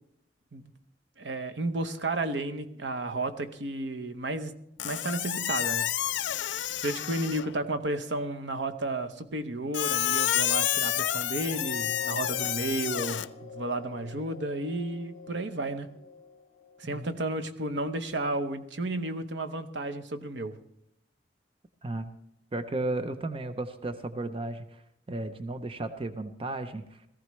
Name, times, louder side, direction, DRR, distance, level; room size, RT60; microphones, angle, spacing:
voice 1, 1.2-4.5 4.8-5.9 6.8-15.9 16.8-20.6, right 2 dB, 75° right, 8 dB, 0.9 m, -32 dB
Squeak, 4.8-7.6 9.7-13.3, left 12 dB, 90° left, 0.5 m, -29 dB
sound 1, 10.8-17.4 18.1-18.2, left 4 dB, 35° left, 1.7 m, -45 dB
voice 2, 22.5-24.8 25.1-27.0, right 2 dB, 30° right, 9 dB, 0.6 m, -34 dB
18.0 x 14.5 x 3.2 m, 0.78 s
head